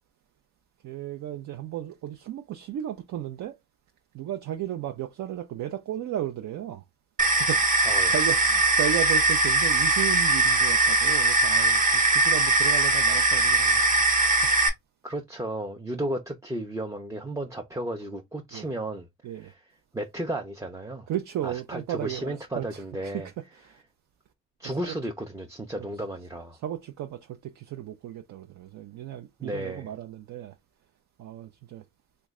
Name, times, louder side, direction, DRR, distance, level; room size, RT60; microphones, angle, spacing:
voice 1, 0.8-3.6 4.1-6.8 7.2-14.0 18.5-18.7 19.2-19.5 21.1-23.1 23.7-23.8 24.8-24.9 26.6-30.5 31.2-31.8, right 11 dB, 70° right, 0.5 m, -34 dB
sound 1, 7.2-14.7, right 2 dB, 25° right, 0.9 m, -21 dB
voice 2, 15.0-19.1 19.3-19.6 19.9-21.1 21.4-23.3 24.6-26.6 29.4-29.9, right 1 dB, 10° right, 0.5 m, -34 dB
3.0 x 2.2 x 3.5 m
cardioid pair, 90°, 30 cm